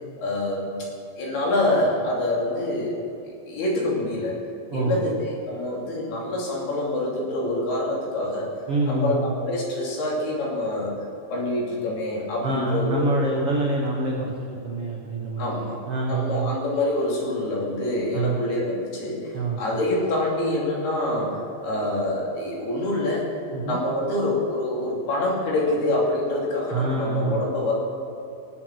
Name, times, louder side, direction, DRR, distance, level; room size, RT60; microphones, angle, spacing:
voice 1, 0.2-0.9 1.2-3.0 3.2-4.4 4.7-8.5 8.9-10.9 11.3-13.3 15.4-15.8 16.1-23.4 23.6-27.7, left 1 dB, 70° left, -4 dB, 4.7 m, -26 dB
voice 2, 4.7-5.0 8.7-9.3 12.4-14.3 14.6-16.5 18.1-18.4 19.3-19.6 23.5-23.8 26.7-27.4, right 2 dB, 90° right, -2 dB, 1.2 m, -26 dB
20.5 x 7.7 x 6.2 m, 2.7 s
omnidirectional pair, 4.9 m